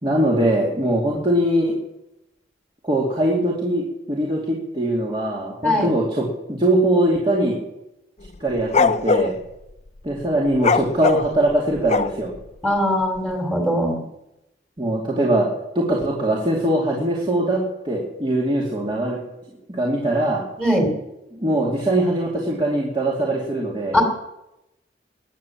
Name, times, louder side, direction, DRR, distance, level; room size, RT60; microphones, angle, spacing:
voice 1, 0.0-1.8 2.8-7.6 8.4-9.3 10.0-12.3 14.8-15.5 15.7-19.2 19.7-20.4 21.3-24.0, right 1 dB, 30° right, -4 dB, 2.6 m, -21 dB
sound 1, 8.2-9.3 10.6-12.4, left 4 dB, 40° left, 0.6 m, -20 dB
voice 2, 12.6-14.0 20.6-20.9 23.9-24.0, left 1 dB, 10° right, 1 dB, 3.1 m, -20 dB
21.0 x 8.8 x 7.3 m, 0.91 s
head